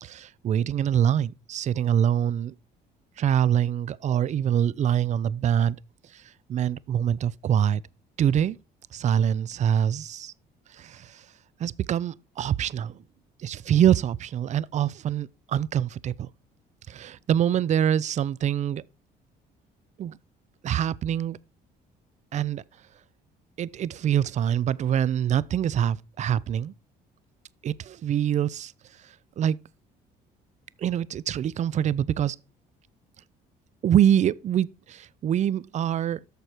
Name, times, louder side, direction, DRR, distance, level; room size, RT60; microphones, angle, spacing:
voice 1, 0.0-2.5 3.2-5.8 6.5-7.8 8.2-8.6 8.9-10.3 11.6-12.9 13.4-16.1 16.9-18.8 20.0-20.1 20.6-21.4 22.3-22.6 23.6-26.7 27.6-28.7 29.4-29.6 30.8-32.4 33.8-34.7 35.2-36.2, right 9 dB, 45° right, 0.5 m, -24 dB
13.5 x 4.8 x 4.4 m
cardioid pair, 110°, 17 cm